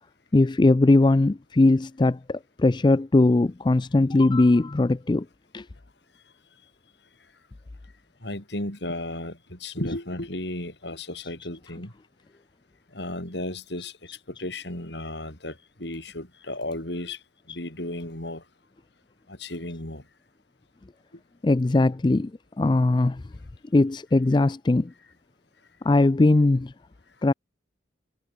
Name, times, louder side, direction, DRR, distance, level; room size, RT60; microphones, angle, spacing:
voice 1, 0.3-5.2 5.5-5.6 17.5-17.6 21.4-22.3 22.6-23.2 23.7-24.9 25.9-26.7 27.2-27.3, left 2 dB, 25° left, 0.4 m, -20 dB
voice 2, 8.2-11.9 12.9-14.0 14.3-17.2 17.5-18.4 19.3-20.0, left 1 dB, 65° left, 5.6 m, -34 dB
head